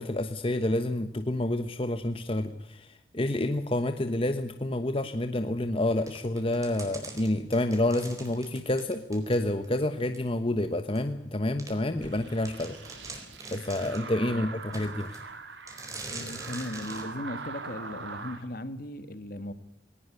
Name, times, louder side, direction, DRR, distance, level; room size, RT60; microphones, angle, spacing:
voice 1, 0.0-12.8 13.5-15.2, left 1 dB, 30° left, 8 dB, 1.2 m, -29 dB
sound 1, 6.1-9.7 10.1-10.2 10.9-11.0 11.6-11.7 12.1-12.2 12.4-14.1 14.7-15.2 15.7-17.1, right 2 dB, 20° right, 4.3 m, -43 dB
sound 2, 12.0-18.4, right 4 dB, 80° right, 3.3 m, -42 dB
voice 2, 16.1-19.5, left 1 dB, 50° left, 11 dB, 1.9 m, -37 dB
20.5 x 18.5 x 9.2 m, 0.83 s
head